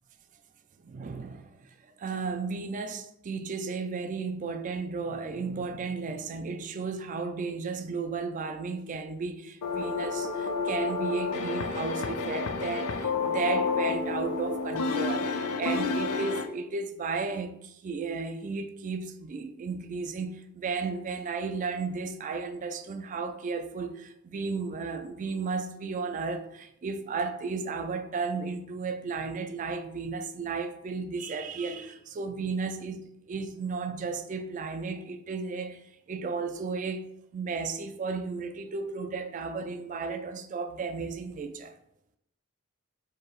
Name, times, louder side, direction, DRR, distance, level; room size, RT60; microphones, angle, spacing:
voice 1, 0.8-1.7 2.0-37.0 37.3-41.7, right 4 dB, 35° right, 0.3 m, -34 dB
sound 1, 9.6-16.5, left 4 dB, 90° left, 0.4 m, -30 dB
4.6 x 2.7 x 3.0 m
head